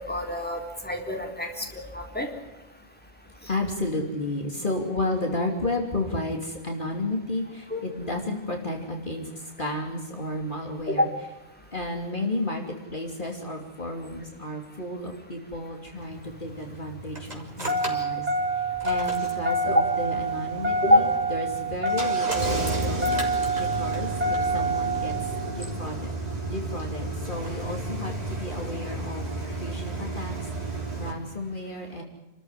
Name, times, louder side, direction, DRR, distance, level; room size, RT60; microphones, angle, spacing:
voice 1, 0.0-1.6 1.9-2.3 7.7-7.8 11.0-11.1 17.9-18.0 19.7-19.8 20.9-21.0, left 1 dB, 10° left, 2 dB, 4.0 m, -24 dB
voice 2, 3.5-11.1 11.7-25.1 25.5-26.1 26.4-29.3 29.5-32.0, left 2 dB, 45° left, 2 dB, 3.2 m, -32 dB
Engine starting, 16.0-31.1, right 2 dB, 35° right, 3.8 m, -28 dB
29.0 x 13.5 x 9.9 m, 0.99 s
omnidirectional pair, 1.2 m